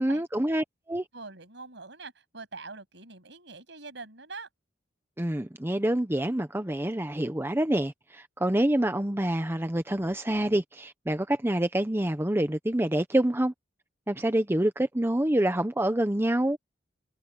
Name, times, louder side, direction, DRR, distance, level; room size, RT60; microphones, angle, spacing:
voice 1, 0.0-1.0 5.2-13.5 14.1-16.6, right 1 dB, 15° right, 0.9 m, -27 dB
voice 2, 1.1-4.5, right 3 dB, 70° right, 7.8 m, -44 dB
head